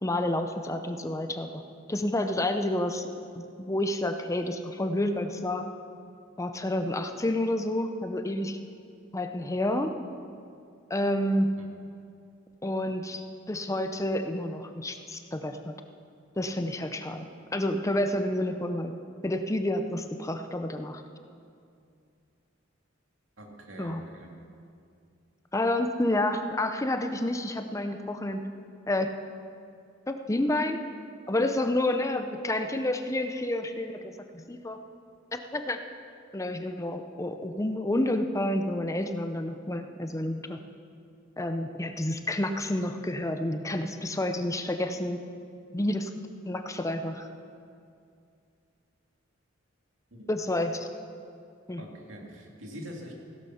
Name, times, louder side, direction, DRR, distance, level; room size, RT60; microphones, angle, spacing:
voice 1, 0.0-1.6 1.9-3.1 3.3-5.7 6.4-8.6 9.1-9.9 10.9-11.5 12.6-15.7 16.4-18.9 19.2-21.0 23.8-24.0 25.5-28.4 28.9-29.1 30.1-30.8 31.3-34.8 35.3-35.8 36.3-40.6 41.4-45.2 45.7-46.1 46.5-47.3 50.3-50.9 51.7-51.8, left 1 dB, 15° left, 7 dB, 0.6 m, -29 dB
voice 2, 23.4-24.3 50.1-50.3 51.8-53.1, equal, 75° right, 0 dB, 2.4 m, -44 dB
16.0 x 11.5 x 5.8 m, 2.4 s
head